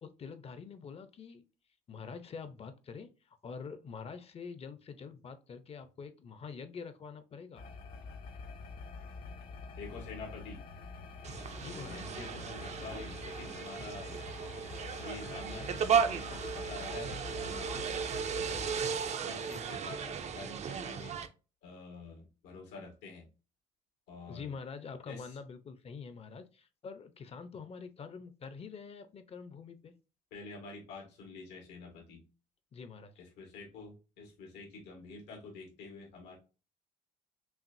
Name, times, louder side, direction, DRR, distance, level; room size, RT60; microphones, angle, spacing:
voice 1, 0.0-1.4 1.9-3.1 3.4-7.7 11.6-12.0 24.3-29.9 32.7-33.1, left 5 dB, 35° left, 10 dB, 0.7 m, -45 dB
sound 1, 7.5-18.8, left 4 dB, 55° left, 1.1 m, -46 dB
voice 2, 9.8-10.7 11.7-14.2 15.0-17.7 18.5-18.8 19.2-21.2 21.6-23.3 24.1-24.5 25.1-25.4 30.3-32.2 33.2-36.4, left 3 dB, 90° left, 0 dB, 1.9 m, -47 dB
sound 2, 11.2-21.3, right 7 dB, 40° right, 0.5 m, -35 dB
5.7 x 2.5 x 2.6 m, 0.33 s
cardioid pair, 110°, 17 cm